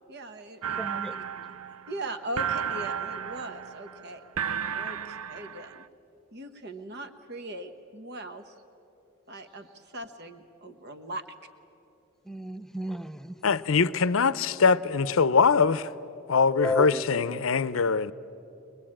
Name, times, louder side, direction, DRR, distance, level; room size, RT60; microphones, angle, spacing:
voice 1, 0.1-1.2 1.9-4.2 4.7-5.8 6.3-8.5 9.3-9.7 9.9-11.2, right 1 dB, 50° right, 1.2 m, -39 dB
sound 1, 0.6-5.9, right 8 dB, 90° right, 0.6 m, -33 dB
voice 2, 0.8-1.1 12.3-13.4 16.5-17.4, left 1 dB, ahead, 0.5 m, -32 dB
voice 3, 13.4-15.9 16.3-18.1, left 5 dB, 70° left, 0.6 m, -23 dB
23.5 x 21.5 x 8.8 m
head